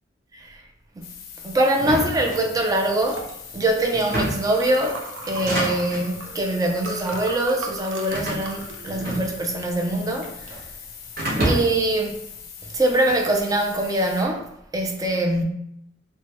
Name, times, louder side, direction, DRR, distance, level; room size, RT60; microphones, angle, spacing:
sound 1, 1.0-14.2, left 7 dB, 55° left, 0.5 m, -41 dB
voice 1, 1.4-3.3 3.5-10.6 11.4-12.2 12.6-15.4, right 1 dB, 20° right, 0.4 m, -23 dB
sound 2, 1.8-2.9 3.9-4.6 5.3-6.1 6.9-7.3 8.1-9.6 9.9-10.7 11.2-11.9, right 1 dB, 50° right, 0.9 m, -28 dB
Liquid, 2.2-12.4, right 2 dB, 80° right, 0.5 m, -39 dB
3.2 x 2.2 x 2.9 m
head